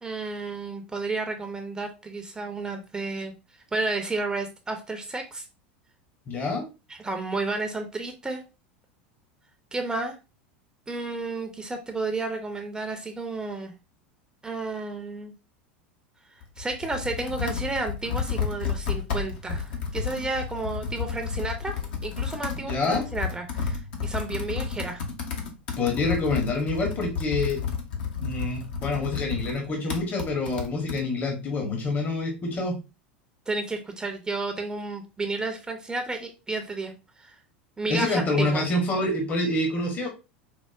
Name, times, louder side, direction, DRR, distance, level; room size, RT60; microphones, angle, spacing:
voice 1, 0.0-3.3 3.7-5.5 6.9-8.4 9.7-10.2 10.9-13.7 14.4-15.3 16.6-21.7 22.0-25.0 33.5-37.4 37.8-38.7, right 3 dB, 15° right, 5 dB, 0.5 m, -32 dB
voice 2, 6.3-6.7 22.6-23.0 25.8-27.6 28.2-32.8 37.9-40.1, left 2 dB, 30° left, 1 dB, 0.9 m, -27 dB
Computer keyboard, 16.4-31.0, left 6 dB, 65° left, 0.9 m, -32 dB
4.6 x 2.1 x 2.3 m, 0.28 s
figure-of-eight pair, 80°, 6 cm